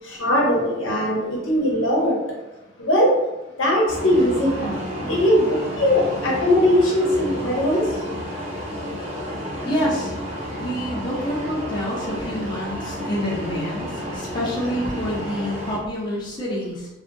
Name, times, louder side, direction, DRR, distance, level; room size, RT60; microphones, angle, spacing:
voice 1, 0.0-2.2 2.8-3.1 3.6-7.8, left 1 dB, 80° left, -3 dB, 0.9 m, -20 dB
sound 1, 3.9-15.8, equal, 35° right, 0.7 m, -31 dB
voice 2, 9.6-10.1 10.6-16.9, equal, 25° left, -5 dB, 0.5 m, -27 dB
2.7 x 2.4 x 2.5 m, 0.98 s
head